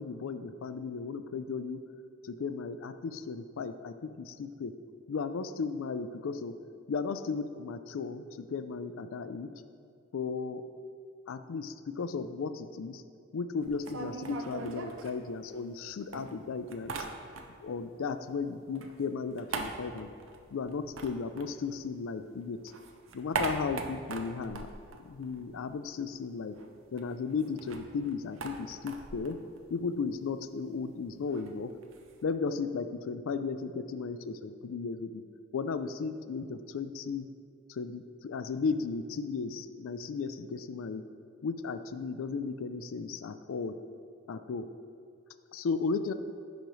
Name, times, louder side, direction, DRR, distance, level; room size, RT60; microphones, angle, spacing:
voice 1, 0.0-1.8 2.2-4.7 5.1-6.6 6.9-9.5 10.1-10.6 11.3-13.0 13.3-16.9 17.6-20.1 20.5-22.6 23.1-24.7 25.0-26.6 26.9-29.4 29.7-31.7 32.2-35.2 35.5-37.3 37.7-41.0 41.4-43.8 44.3-44.7 45.5-46.1, left 5 dB, 70° left, 11 dB, 0.4 m, -35 dB
sound 1, 13.6-15.8 16.1-17.8 18.0-22.2 22.5-25.8 26.1-26.2 26.4-32.2, right 4 dB, 65° right, 0.6 m, -41 dB
10.0 x 5.2 x 3.1 m, 2.2 s
head